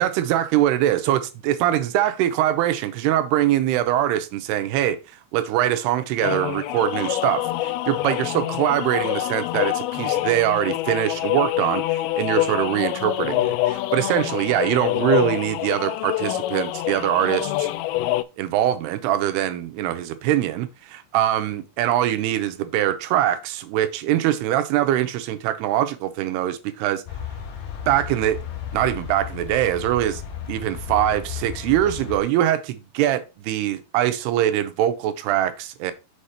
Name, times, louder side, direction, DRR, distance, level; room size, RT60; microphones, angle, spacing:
voice 1, 0.0-5.0 5.3-17.7 18.4-27.0 27.9-28.4 28.7-30.2 30.5-35.9, right 12 dB, 85° right, 2.8 m, -23 dB
sound 1, 6.2-18.2, left 15 dB, 80° left, 2.3 m, -26 dB
sound 2, 27.1-32.2, left 8 dB, 60° left, 2.6 m, -34 dB
7.1 x 5.0 x 4.3 m
omnidirectional pair, 4.5 m